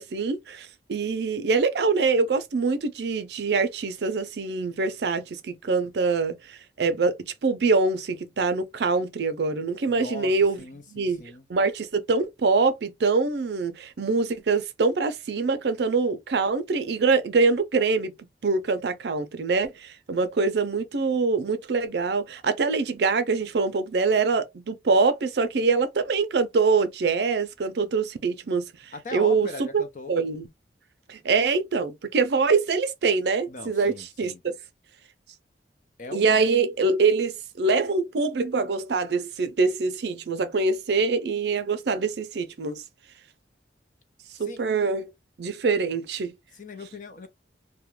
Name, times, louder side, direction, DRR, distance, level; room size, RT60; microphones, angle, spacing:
voice 1, 0.0-7.1 7.4-10.6 10.9-11.2 11.5-18.1 18.4-28.6 29.1-29.5 29.7-29.8 30.1-30.5 31.1-34.5 36.1-42.8 44.4-45.1 45.4-46.3, right 4 dB, 65° right, 0.4 m, -24 dB
voice 2, 9.9-11.5 28.9-30.2 33.5-34.4 36.0-36.4 44.4-44.6 46.5-47.3, left 3 dB, 45° left, 0.5 m, -39 dB
2.3 x 2.1 x 3.0 m
head